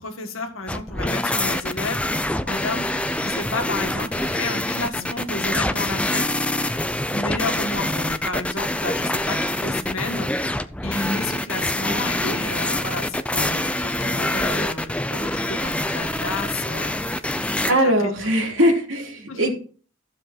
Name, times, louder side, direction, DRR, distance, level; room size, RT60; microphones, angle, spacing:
voice 1, 0.0-2.1 2.5-2.9 3.2-6.3 7.0-10.5 10.8-17.2 17.8-18.3 19.3-19.5, left 3 dB, 80° left, 5 dB, 1.9 m, -31 dB
sound 1, 0.7-17.7, left 1 dB, 5° left, 0.5 m, -25 dB
voice 2, 17.7-19.5, equal, 70° right, 1 dB, 3.2 m, -21 dB
14.0 x 7.5 x 4.3 m, 0.41 s
head